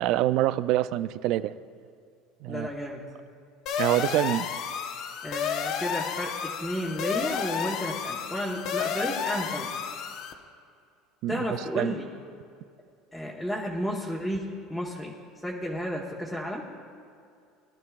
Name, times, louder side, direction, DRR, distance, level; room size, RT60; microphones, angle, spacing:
voice 1, 0.0-1.6 2.4-2.7 3.8-4.5 11.2-12.0, right 14 dB, 60° right, 15 dB, 0.4 m, -26 dB
voice 2, 2.5-3.1 5.2-9.7 11.3-12.1 13.1-15.2 15.4-16.7, equal, ahead, -5 dB, 1.3 m, -32 dB
sound 1, 3.7-10.3, left 7 dB, 55° left, 0.9 m, -31 dB
20.5 x 12.0 x 2.4 m, 2.4 s
supercardioid pair, 130°, 0 cm